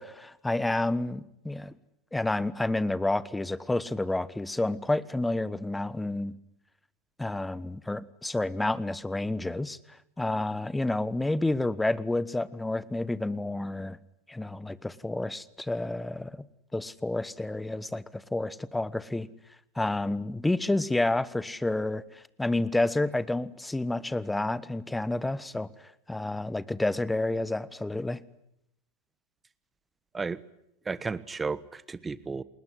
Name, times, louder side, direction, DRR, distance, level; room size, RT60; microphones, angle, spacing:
voice 1, 0.0-1.7 2.1-6.3 7.2-9.8 10.2-14.0 14.3-16.4 16.7-19.3 19.7-25.7 26.1-28.2, left 2 dB, 5° left, 19 dB, 1.2 m, -29 dB
voice 2, 30.8-32.4, right 4 dB, 15° right, 18 dB, 1.3 m, -33 dB
29.5 x 20.5 x 9.8 m, 0.80 s
figure-of-eight pair, 95°, 0 cm